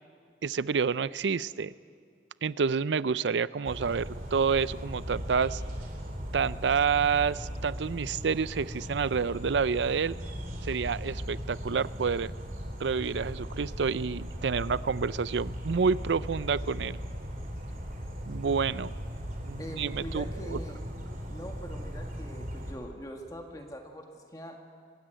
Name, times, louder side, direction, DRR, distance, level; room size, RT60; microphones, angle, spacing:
voice 1, 0.4-1.7 2.4-5.6 6.3-10.2 10.6-12.3 12.8-17.0 18.3-18.9 19.4-20.6, right 5 dB, 90° right, 18 dB, 0.5 m, -28 dB
sound 1, 3.6-22.7, equal, 50° right, 3.6 m, -38 dB
voice 2, 19.6-20.8 21.3-24.6, equal, 20° left, 3 dB, 1.7 m, -43 dB
23.0 x 16.0 x 9.1 m, 2.3 s
head